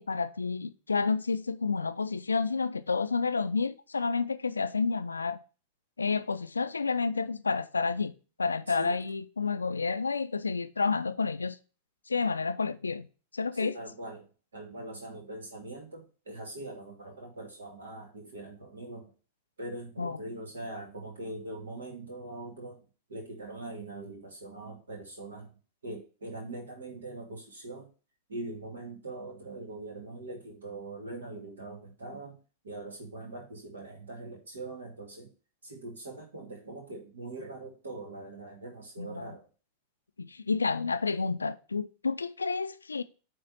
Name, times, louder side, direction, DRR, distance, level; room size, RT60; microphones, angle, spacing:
voice 1, 0.0-5.4 6.0-8.1 8.4-11.6 12.1-13.1 13.3-13.7 20.0-20.2 39.0-39.3 40.2-43.0, left 4 dB, 75° left, 0.4 m, -30 dB
voice 2, 8.7-9.0 13.5-14.2 14.5-19.1 19.6-22.8 23.1-25.5 25.8-27.9 28.3-32.4 32.6-35.3 35.6-39.4, right 2 dB, 70° right, 2.3 m, -42 dB
8.8 x 3.2 x 4.4 m
figure-of-eight pair, 90°, 0 cm